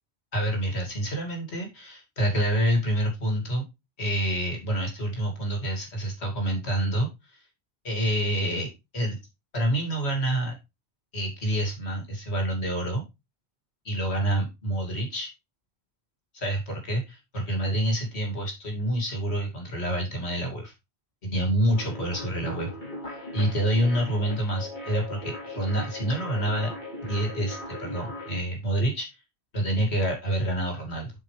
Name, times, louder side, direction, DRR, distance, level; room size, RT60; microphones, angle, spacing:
voice 1, 0.3-3.6 4.0-7.4 7.8-8.7 8.9-9.2 9.5-10.5 11.1-13.0 13.8-15.3 16.3-20.7 21.2-22.7 23.3-26.7 27.0-29.1 29.5-31.1, right 1 dB, 85° left, 2 dB, 2.8 m, -27 dB
sound 1, 21.7-28.4, left 1 dB, 45° left, 2.9 m, -38 dB
8.1 x 5.5 x 3.3 m, 0.24 s
omnidirectional pair, 1.1 m